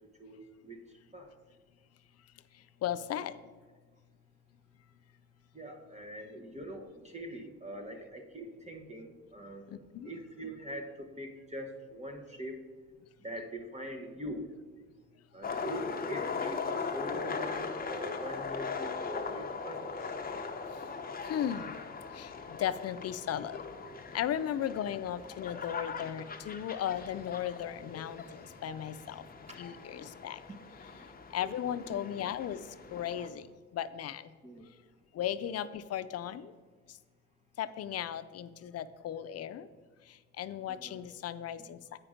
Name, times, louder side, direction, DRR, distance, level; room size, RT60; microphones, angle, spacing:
voice 1, 0.2-0.8 1.1-1.3 5.5-12.6 13.2-14.5 15.3-20.0 28.7-28.8 29.5-29.6 30.9-31.0 31.6-31.8 34.4-34.6 40.7-41.0, equal, 20° right, 4 dB, 1.0 m, -43 dB
voice 2, 2.8-3.4 9.7-10.1 21.2-21.7 22.1-23.6 24.1-29.2 29.6-30.4 31.3-32.6 32.9-33.5 33.7-34.3 35.1-36.5 37.6-39.7 40.1-41.8, left 10 dB, 55° left, 13 dB, 0.5 m, -36 dB
sound 1, 15.4-33.3, left 5 dB, 30° left, 0.8 m, -40 dB
8.5 x 5.1 x 5.0 m, 1.4 s
cardioid pair, 90°, 30 cm